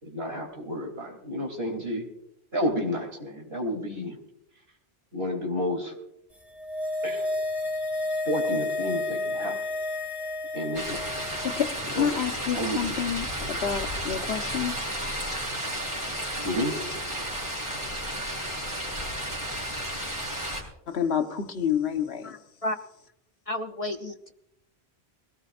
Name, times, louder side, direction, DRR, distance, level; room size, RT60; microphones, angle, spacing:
voice 1, 0.0-2.0 2.5-4.2 5.1-5.9 7.0-7.3 8.2-9.6 10.5-11.1 11.9-12.1 12.5-12.8 16.4-16.8, equal, 70° right, 3.5 m, -30 dB
sound 1, 6.4-11.9 12.1-12.2, left 2 dB, ahead, 1.9 m, -31 dB
sound 2, 10.7-20.6, equal, 30° right, 4.1 m, -32 dB
voice 2, 11.4-14.8 20.9-22.4, left 8 dB, 75° left, 1.3 m, -29 dB
voice 3, 23.5-24.3, left 1 dB, 40° left, 0.6 m, -31 dB
21.0 x 18.0 x 2.5 m
omnidirectional pair, 1.1 m